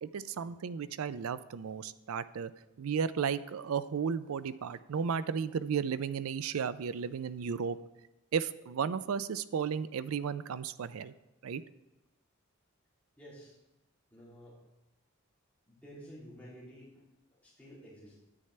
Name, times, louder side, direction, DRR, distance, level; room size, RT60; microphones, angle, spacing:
voice 1, 0.0-2.5 2.8-7.8 8.3-11.1 11.4-11.6, right 6 dB, 90° right, 15 dB, 0.4 m, -34 dB
voice 2, 13.2-13.6 14.1-14.6 15.7-17.0 17.3-18.2, equal, 5° left, -8 dB, 2.8 m, -51 dB
9.8 x 8.8 x 3.2 m, 0.98 s
head